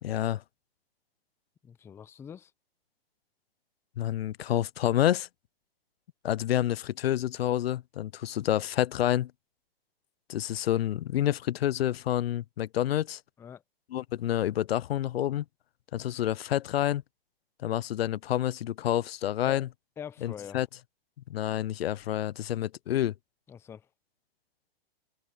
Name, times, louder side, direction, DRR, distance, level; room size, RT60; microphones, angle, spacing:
voice 1, 0.0-0.4 4.0-5.3 6.2-9.3 10.3-13.2 13.9-15.4 15.9-17.0 17.6-19.7 20.2-20.7 21.3-23.1, left 12 dB, 85° left, 0.5 m, -28 dB
voice 2, 1.6-2.5 13.4-13.6 19.4-19.7 20.0-20.6 23.5-23.9, left 8 dB, 10° left, 0.5 m, -44 dB
hypercardioid pair, 130°, 30 cm